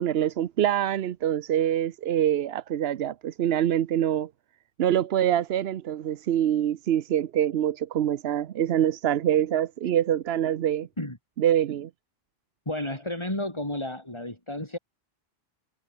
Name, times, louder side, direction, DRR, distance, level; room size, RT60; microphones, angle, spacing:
voice 1, 0.0-4.3 4.8-10.9 11.4-11.9, right 10 dB, 75° right, 0.9 m, -25 dB
voice 2, 12.7-14.8, left 1 dB, 25° left, 4.3 m, -32 dB
omnidirectional pair, 1.1 m